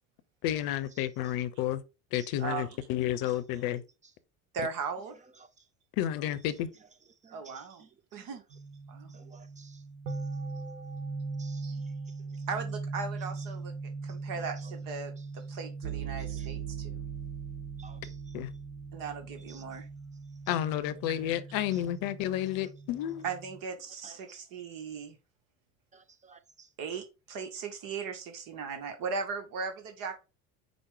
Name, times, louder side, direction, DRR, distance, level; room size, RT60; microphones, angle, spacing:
voice 1, 0.4-1.8 2.1-3.8 5.9-6.7 18.3-18.5 20.5-23.3, left 12 dB, 60° left, 0.7 m, -31 dB
voice 2, 4.5-5.1 7.3-7.8 8.1-8.4 8.9-9.1 11.6-11.8 12.5-17.0 18.9-19.9 23.2-25.2 26.8-30.2, right 5 dB, 55° right, 0.9 m, -38 dB
voice 3, 7.2-7.6 9.1-9.8 11.4-11.6 16.4-16.5 17.8-18.0 19.5-19.6 24.0-24.4 25.9-26.7, right 4 dB, 20° right, 0.5 m, -55 dB
sound 1, 8.5-23.6, right 4 dB, 80° right, 0.8 m, -40 dB
5.0 x 2.1 x 4.7 m
hypercardioid pair, 70°, 40 cm